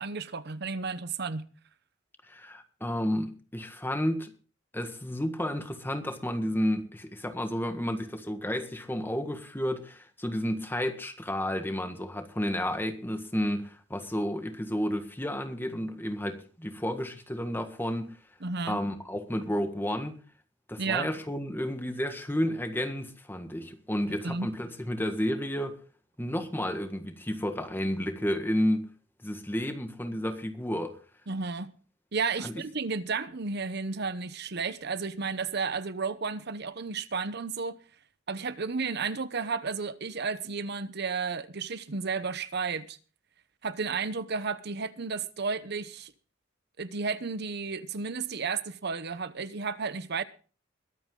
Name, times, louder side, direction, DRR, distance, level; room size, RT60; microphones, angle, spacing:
voice 1, 0.0-1.5 18.4-18.8 20.8-21.1 24.1-24.5 31.3-31.7 32.1-37.8 38.3-43.0 43.6-46.1 46.8-50.2, right 4 dB, 60° right, 0.9 m, -32 dB
voice 2, 2.3-4.3 4.7-18.2 18.6-20.2 20.7-25.8 26.2-28.9 29.2-31.0 32.4-32.5, equal, 10° left, 1.6 m, -31 dB
22.5 x 8.7 x 3.8 m
head